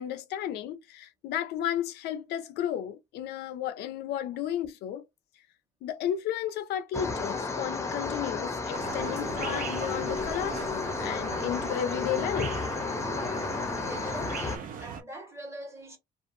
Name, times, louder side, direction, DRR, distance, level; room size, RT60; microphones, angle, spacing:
voice 1, 0.0-5.0 5.8-12.5, left 10 dB, 75° left, 0.5 m, -33 dB
sound 1, 6.9-14.6, left 3 dB, 15° left, 0.6 m, -32 dB
sound 2, 8.7-15.0, right 6 dB, 55° right, 0.7 m, -40 dB
voice 2, 13.9-16.0, right 1 dB, 15° right, 1.2 m, -43 dB
2.6 x 2.4 x 2.6 m
cardioid pair, 110°, 17 cm